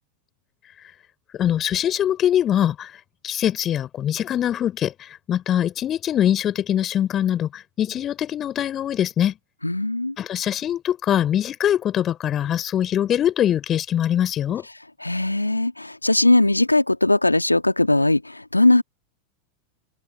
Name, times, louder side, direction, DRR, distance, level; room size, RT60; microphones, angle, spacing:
voice 1, 0.6-1.0 1.3-9.4 10.2-14.7, left 10 dB, 30° left, 4.2 m, -23 dB
voice 2, 9.6-10.2 15.0-18.8, left 2 dB, 90° left, 1.9 m, -19 dB
figure-of-eight pair, 85°, 0 cm